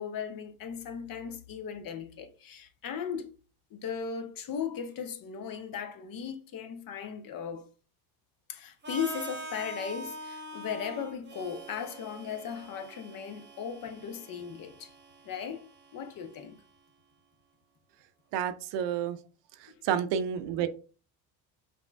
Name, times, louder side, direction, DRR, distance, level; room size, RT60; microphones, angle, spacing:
voice 1, 0.0-3.3 3.7-7.7 8.5-14.9 15.2-15.7 15.9-16.6 19.7-19.8, left 7 dB, 45° left, 0.8 m, -37 dB
Harmonica, 8.8-16.7, right 2 dB, 20° right, 1.0 m, -45 dB
voice 2, 18.3-19.2 19.6-20.7, right 9 dB, 60° right, 0.7 m, -30 dB
5.1 x 2.8 x 2.2 m
hypercardioid pair, 75°, 48 cm